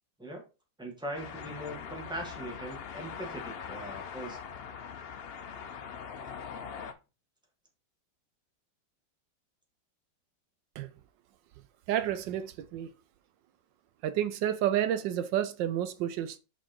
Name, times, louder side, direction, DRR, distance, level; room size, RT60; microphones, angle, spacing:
voice 1, 0.8-4.4, right 1 dB, 5° right, 1.6 m, -40 dB
sound 1, 1.1-6.9, left 6 dB, 85° left, 0.5 m, -42 dB
voice 2, 11.9-12.9 14.0-16.4, right 11 dB, 85° right, 1.3 m, -30 dB
5.8 x 4.5 x 4.4 m
omnidirectional pair, 1.9 m